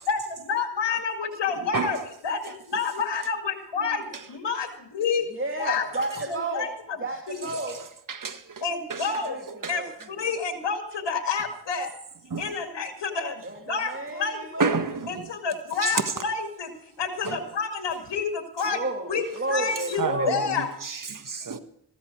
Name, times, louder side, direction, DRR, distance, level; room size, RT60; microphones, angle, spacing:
voice 1, 0.1-2.0 2.2-4.0 4.3-5.3 5.6-5.8 6.3-6.7 7.3-7.4 8.6-9.4 9.7-12.0 12.4-14.7 15.1-16.7 17.0-18.8 19.1-20.7, left 5 dB, 80° left, 2.3 m, -29 dB
voice 2, 5.3-6.7 7.0-7.8 9.2-10.1 13.4-14.9 18.6-20.6, right 2 dB, 30° right, 2.6 m, -32 dB
voice 3, 8.1-8.4 8.9-9.0 9.6-9.7 12.3-12.5 14.6-15.3 15.8-15.9 17.3-17.4 20.0-21.6, right 5 dB, 50° right, 1.6 m, -29 dB
15.0 x 13.5 x 4.7 m
cardioid pair, 60°, 42 cm